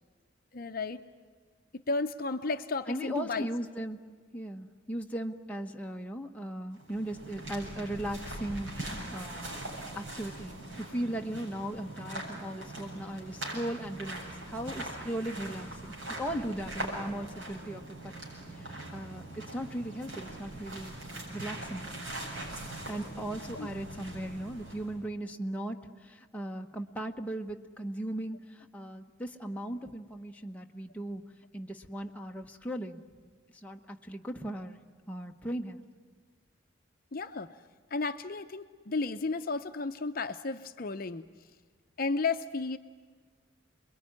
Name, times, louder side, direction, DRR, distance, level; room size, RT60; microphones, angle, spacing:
voice 1, 0.5-1.0 1.9-3.5 23.5-23.7 37.1-37.5 37.9-41.2 42.0-42.8, left 3 dB, 50° left, 8 dB, 0.7 m, -33 dB
voice 2, 2.9-4.0 4.3-9.5 9.9-18.1 18.5-21.0 21.3-22.0 22.9-31.2 31.5-33.0 33.6-34.8 35.1-35.8, right 1 dB, 5° left, 2 dB, 1.1 m, -38 dB
sound 1, 6.7-25.0, right 1 dB, 80° right, 7.7 m, -41 dB
28.0 x 22.0 x 9.7 m, 1.5 s
head